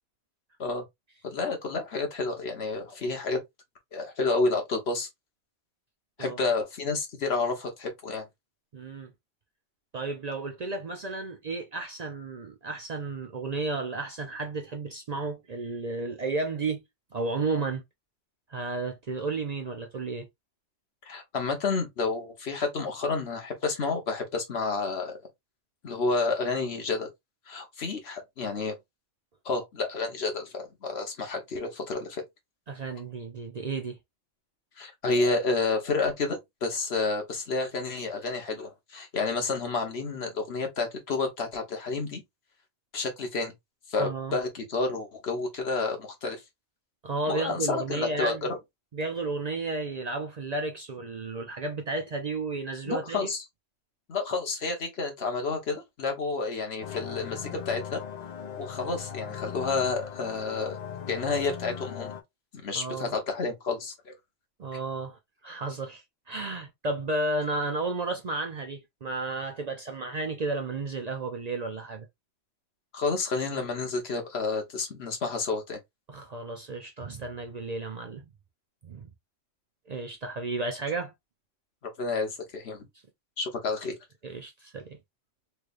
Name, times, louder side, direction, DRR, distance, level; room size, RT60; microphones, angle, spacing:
voice 1, 1.2-3.4 3.9-5.1 6.2-8.2 21.0-25.1 25.8-27.1 27.5-28.8 29.4-32.2 34.8-42.2 42.9-43.5 43.9-46.4 47.3-48.5 52.9-53.4 54.1-58.0 58.6-60.8 61.1-62.1 62.5-64.1 72.9-75.8 82.0-82.8 83.4-83.9, left 3 dB, 70° left, 1.3 m, -30 dB
voice 2, 6.2-6.5 8.7-9.1 9.9-16.8 17.1-17.8 18.5-20.3 32.7-34.0 44.0-44.4 47.0-48.5 48.9-53.3 62.7-63.2 64.6-72.1 76.1-78.3 78.8-79.1 79.9-81.1 84.2-85.0, right 3 dB, 50° right, 0.5 m, -33 dB
sound 1, 56.8-62.2, left 8 dB, 45° left, 0.7 m, -39 dB
3.3 x 3.2 x 2.4 m
omnidirectional pair, 1.1 m